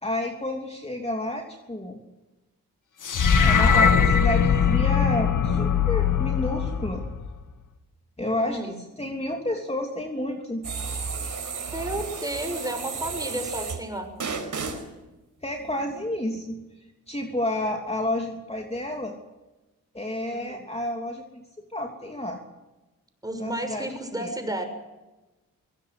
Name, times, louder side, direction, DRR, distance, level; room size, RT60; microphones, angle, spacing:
voice 1, 0.0-2.0 3.4-7.0 8.2-10.6 15.4-16.6 17.1-19.1 19.9-21.4 21.7-22.4 23.4-24.3, left 1 dB, 20° left, 2 dB, 3.2 m, -30 dB
sound 1, 3.0-7.4, left 6 dB, 65° left, 1.9 m, -21 dB
voice 2, 8.4-8.8 11.7-14.1 20.3-20.6 23.2-24.6, right 1 dB, 10° right, 6 dB, 6.6 m, -32 dB
sound 2, 10.6-13.8 14.2-14.8, right 5 dB, 65° right, 5.0 m, -33 dB
23.0 x 18.0 x 8.0 m, 1.1 s
cardioid pair, 70°, 34 cm